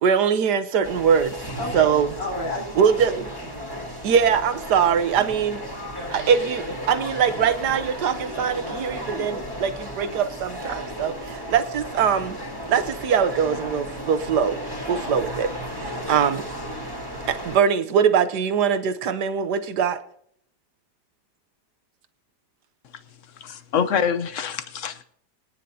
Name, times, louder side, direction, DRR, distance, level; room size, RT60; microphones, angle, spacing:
voice 1, 0.0-1.3 1.7-2.1 2.8-3.3 4.0-5.6 6.1-12.4 12.7-14.6 14.9-15.5 15.8-16.4 17.3-20.0, right 7 dB, 75° right, 1.5 m, -22 dB
sound 1, 0.8-17.6, equal, 10° left, 3.2 m, -34 dB
voice 2, 1.6-1.9 2.2-3.9 5.6-5.7 9.1-9.4 15.0-15.3 15.9-16.2, left 1 dB, 90° left, 5.1 m, -34 dB
voice 3, 23.4-25.0, left 7 dB, 55° left, 1.1 m, -25 dB
24.0 x 9.9 x 2.8 m
omnidirectional pair, 1.8 m